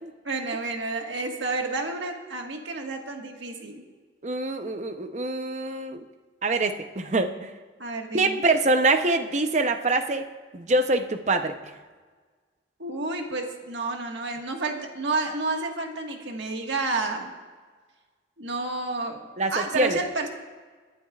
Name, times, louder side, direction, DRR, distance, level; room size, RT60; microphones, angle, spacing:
voice 1, 0.2-3.8 7.8-8.4 12.8-17.3 18.4-19.2 19.5-20.3, right 3 dB, 70° right, 2 dB, 1.6 m, -30 dB
voice 2, 4.2-6.0 6.4-7.5 8.1-10.3 10.5-11.6 19.4-20.0, right 2 dB, 40° right, 8 dB, 0.7 m, -24 dB
22.5 x 11.5 x 2.4 m, 1.4 s
head